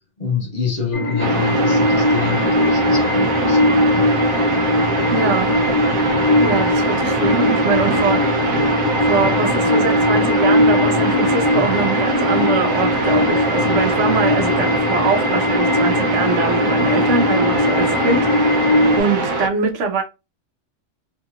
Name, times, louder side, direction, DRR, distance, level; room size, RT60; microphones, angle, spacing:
voice 1, 0.2-4.1 11.5-11.6, left 5 dB, 40° left, 1.2 m, -27 dB
sound 1, 0.9-19.0, left 2 dB, 85° left, 1.1 m, -19 dB
sound 2, 1.2-19.5, right 3 dB, 90° right, 1.0 m, -22 dB
voice 2, 5.1-5.6 6.4-8.3 9.0-20.0, right 4 dB, 65° right, 1.0 m, -23 dB
2.9 x 2.7 x 2.4 m
omnidirectional pair, 1.4 m